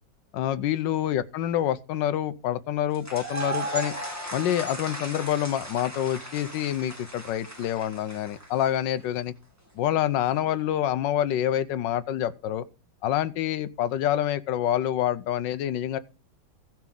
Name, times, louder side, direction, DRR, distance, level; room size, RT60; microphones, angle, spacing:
voice 1, 0.3-3.9 4.3-9.3 9.7-12.6 13.0-16.0, left 11 dB, 75° left, 1.3 m, -27 dB
sound 1, 2.9-8.9, right 2 dB, 10° right, 1.6 m, -36 dB
16.0 x 6.0 x 3.8 m
omnidirectional pair, 2.1 m